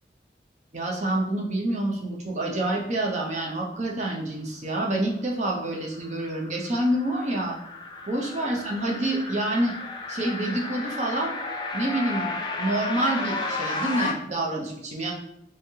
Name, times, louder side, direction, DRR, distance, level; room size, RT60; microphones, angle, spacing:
voice 1, 0.7-7.6 8.1-9.7 10.1-11.3 11.7-12.3 12.6-15.1, right 1 dB, 40° right, -1 dB, 0.6 m, -27 dB
sound 1, 5.8-14.1, left 3 dB, 25° left, 0.3 m, -33 dB
3.4 x 3.2 x 2.8 m, 0.79 s
head